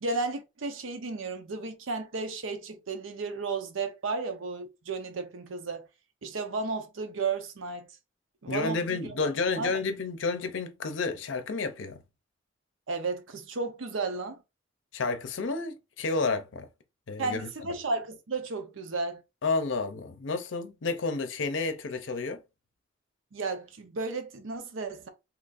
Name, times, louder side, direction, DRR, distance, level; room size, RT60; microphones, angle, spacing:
voice 1, 0.0-5.9 6.2-7.8 8.4-9.0 9.6-9.7 12.9-14.4 17.2-19.2 23.3-25.1, right 3 dB, 90° right, 0.7 m, -33 dB
voice 2, 8.5-12.0 14.9-16.7 17.1-17.5 19.4-22.4, left 3 dB, 75° left, 0.5 m, -30 dB
2.9 x 2.5 x 3.9 m
head